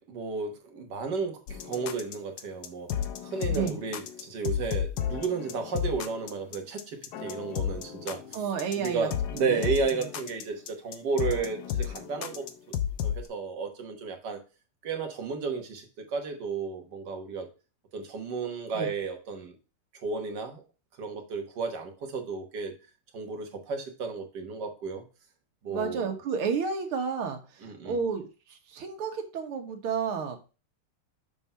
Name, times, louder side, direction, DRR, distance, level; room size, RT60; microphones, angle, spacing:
voice 1, 0.0-2.9 3.2-8.2 8.8-12.8 13.0-14.4 14.8-17.5 17.9-19.6 20.0-20.6 21.0-22.7 23.1-25.0 25.6-26.2 27.6-28.0, right 5 dB, 55° right, 1.7 m, -33 dB
sound 1, 1.5-13.3, left 9 dB, 65° left, 1.1 m, -33 dB
voice 2, 8.3-9.7 18.7-18.9 25.7-30.4, right 6 dB, 85° right, 2.1 m, -31 dB
6.9 x 3.7 x 5.5 m
omnidirectional pair, 2.3 m